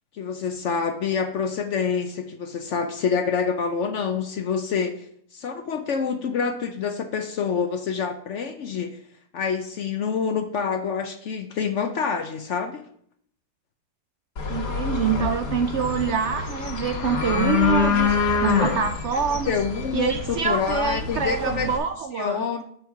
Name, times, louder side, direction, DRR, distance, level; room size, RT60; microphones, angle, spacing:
voice 1, 0.2-5.1 5.3-9.0 9.3-12.9 19.3-21.7 22.2-22.6, left 6 dB, 65° left, 7 dB, 0.7 m, -27 dB
sound 1, 14.4-21.8, left 5 dB, 85° left, 1.9 m, -26 dB
voice 2, 14.5-19.6 19.9-22.5, right 7 dB, 80° right, 7 dB, 0.6 m, -26 dB
7.9 x 4.6 x 5.7 m, 0.65 s
omnidirectional pair, 1.7 m